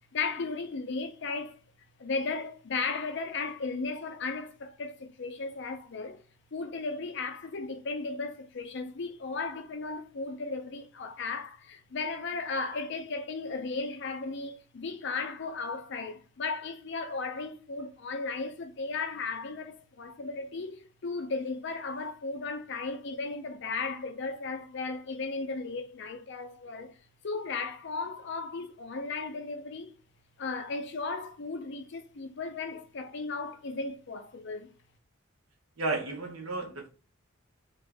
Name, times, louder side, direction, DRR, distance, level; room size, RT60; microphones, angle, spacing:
voice 1, 0.1-1.6 2.0-6.2 6.5-27.0 27.2-29.9 30.4-34.7, left 4 dB, 55° left, 0.5 m, -35 dB
voice 2, 35.8-36.9, right 3 dB, 85° right, 1.0 m, -33 dB
2.6 x 2.5 x 3.4 m
head